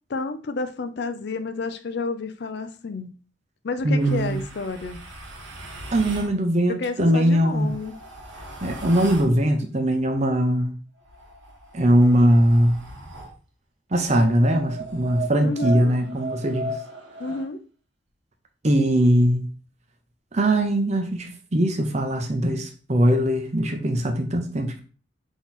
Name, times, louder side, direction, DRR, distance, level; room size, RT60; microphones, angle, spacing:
voice 1, 0.1-3.1 3.6-5.0 6.8-7.9 15.4-15.9 17.2-17.6, left 3 dB, 55° left, 0.4 m, -30 dB
voice 2, 3.8-4.4 5.9-7.7 8.6-10.8 11.7-12.8 13.9-16.8 18.6-19.5 20.3-24.8, right 1 dB, 35° right, 0.7 m, -21 dB
sound 1, 4.0-6.3 7.3-9.4 11.0-13.4 14.0-17.5, right 2 dB, 70° right, 1.2 m, -37 dB
4.0 x 3.0 x 3.9 m
head